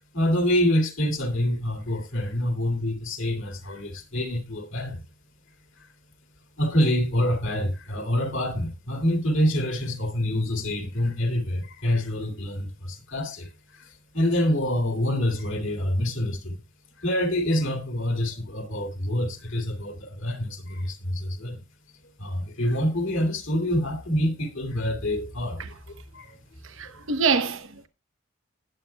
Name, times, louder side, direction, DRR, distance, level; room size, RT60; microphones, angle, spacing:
voice 1, 0.0-5.0 5.8-5.9 6.6-16.6 17.0-21.6 22.2-25.8 26.1-26.4, left 1 dB, 60° left, 2.3 m, -26 dB
voice 2, 26.8-27.9, right 5 dB, 65° right, 0.9 m, -25 dB
18.5 x 8.0 x 2.2 m
head